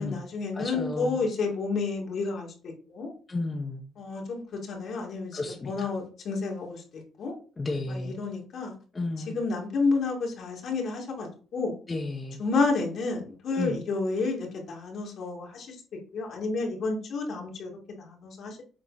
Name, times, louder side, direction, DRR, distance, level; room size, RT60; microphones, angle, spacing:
voice 1, 0.0-3.1 4.0-5.4 5.7-7.3 7.9-8.7 9.3-11.7 12.4-15.7 16.1-18.6, left 3 dB, 65° left, -1 dB, 2.6 m, -30 dB
voice 2, 0.5-1.2 3.3-3.8 5.3-5.9 7.6-8.2 8.9-9.3 11.9-12.4 13.5-13.8, left 2 dB, 25° left, 0 dB, 1.3 m, -32 dB
7.7 x 4.1 x 4.2 m, 0.38 s
cardioid pair, 90°, 0 cm